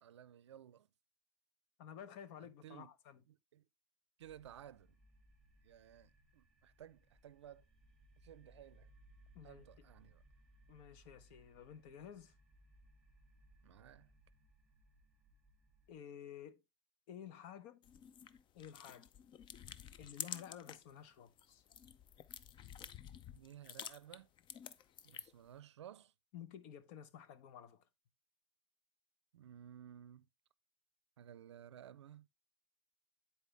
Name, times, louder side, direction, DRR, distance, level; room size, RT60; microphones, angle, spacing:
voice 1, 0.0-0.9 2.4-2.9 3.3-3.6 4.2-5.0 5.6-7.7 8.2-8.9 9.4-10.2 13.6-14.1 23.3-24.3 25.0-26.1 29.3-30.3 31.2-32.3, right 10 dB, 90° right, 0.5 m, -56 dB
voice 2, 1.8-3.2 9.3-9.8 10.7-12.3 15.9-16.6 17.1-17.9 18.5-19.1 20.0-21.6 26.3-27.8, left 9 dB, 60° left, 1.0 m, -52 dB
sound 1, 4.2-16.0, right 1 dB, 5° left, 2.5 m, -66 dB
sound 2, 17.8-20.9 21.3-25.5, left 9 dB, 35° left, 0.6 m, -50 dB
9.9 x 4.3 x 3.3 m
hypercardioid pair, 100°, 14 cm